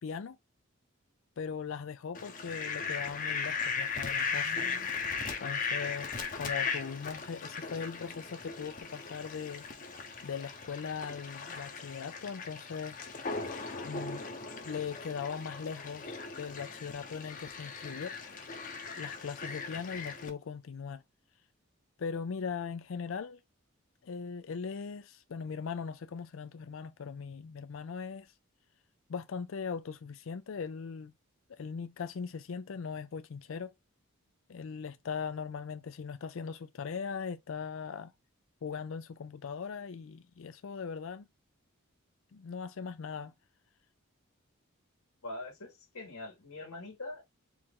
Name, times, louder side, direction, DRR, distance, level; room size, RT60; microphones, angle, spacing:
voice 1, 0.0-0.4 1.4-4.9 5.4-9.6 10.2-13.0 13.8-14.2 14.6-18.2 19.0-21.0 22.0-23.4 24.0-28.3 29.1-31.1 31.5-33.7 34.5-38.1 38.6-41.3 42.3-43.3, left 6 dB, 65° left, 0.4 m, -39 dB
Fowl, 2.1-20.3, left 5 dB, 40° left, 0.8 m, -38 dB
voice 2, 45.2-47.2, left 2 dB, 90° left, 1.6 m, -43 dB
4.7 x 2.5 x 3.6 m
head